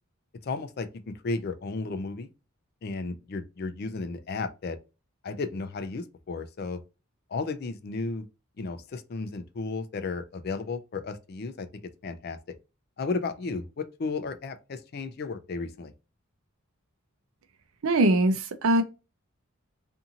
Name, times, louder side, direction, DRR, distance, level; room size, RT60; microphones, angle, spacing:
voice 1, 0.4-2.3 2.8-4.8 5.2-6.8 7.3-8.2 8.6-12.4 13.0-15.9, left 3 dB, 50° left, 0.4 m, -34 dB
voice 2, 17.8-18.8, right 1 dB, 80° right, 0.5 m, -22 dB
2.6 x 2.5 x 2.7 m
head